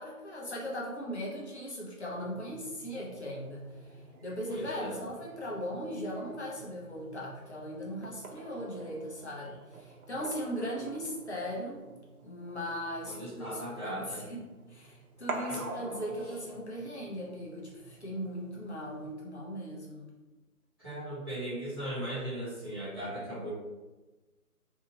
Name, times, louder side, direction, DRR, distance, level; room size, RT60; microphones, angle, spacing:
voice 1, 0.0-11.8 12.2-14.4 14.7-20.1, equal, 45° left, -4 dB, 0.8 m, -38 dB
sound 1, 2.1-19.1, right 3 dB, 70° right, 0.6 m, -47 dB
voice 2, 4.5-5.0 13.0-14.3 15.5-15.8 20.8-23.5, right 1 dB, 15° right, -14 dB, 0.8 m, -38 dB
2.8 x 2.5 x 2.7 m, 1.2 s
figure-of-eight pair, 165°, 45 cm